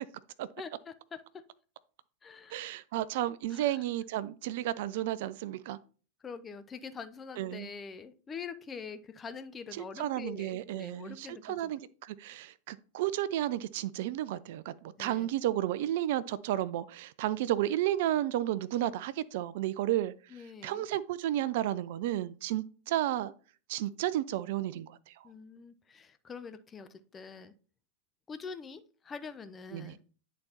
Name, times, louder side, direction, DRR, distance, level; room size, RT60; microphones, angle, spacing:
voice 1, 0.6-1.4 2.2-2.7 3.5-3.8 6.2-11.7 15.0-15.3 20.3-20.9 25.2-27.5 28.3-30.0, left 5 dB, 20° left, 0.5 m, -45 dB
voice 2, 2.5-5.8 7.4-7.7 9.8-14.7 15.0-20.1 20.6-23.3 23.7-25.0 29.7-29.9, right 13 dB, 50° right, 0.3 m, -32 dB
10.5 x 4.0 x 2.9 m
figure-of-eight pair, 90°, 0 cm